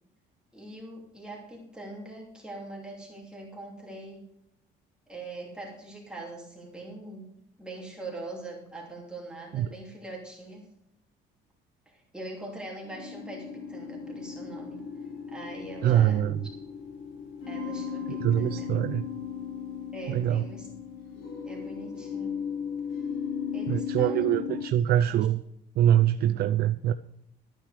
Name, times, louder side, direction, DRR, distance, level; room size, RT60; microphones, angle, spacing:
voice 1, 0.5-4.2 5.1-7.3 7.6-10.7 11.9-14.8 15.3-16.2 17.5-18.7 19.9-20.7 21.4-22.4 23.5-25.2, right 2 dB, 5° right, -3 dB, 2.9 m, -42 dB
sound 1, 12.8-24.6, left 7 dB, 70° left, 4.0 m, -36 dB
voice 2, 15.8-16.4 18.1-19.0 20.1-20.4 23.7-25.4 25.8-26.9, right 11 dB, 55° right, 9 dB, 0.5 m, -24 dB
13.5 x 9.1 x 4.8 m, 0.77 s
cardioid pair, 155°, 20 cm